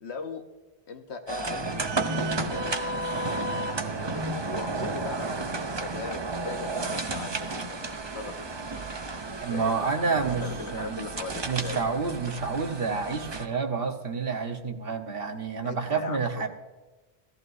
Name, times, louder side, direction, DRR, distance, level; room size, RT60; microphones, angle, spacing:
voice 1, 0.0-0.4 0.9-1.7 2.4-2.8 3.9-8.3 9.3-9.8 10.4-11.8 15.6-16.5, left 4 dB, 85° left, 6 dB, 1.4 m, -39 dB
sound 1, 1.3-13.5, right 2 dB, 30° right, 0.7 m, -32 dB
voice 2, 9.4-10.5 10.7-11.0 11.4-16.5, right 4 dB, 60° right, 5 dB, 1.4 m, -29 dB
17.5 x 14.0 x 2.7 m, 1.2 s
omnidirectional pair, 1.1 m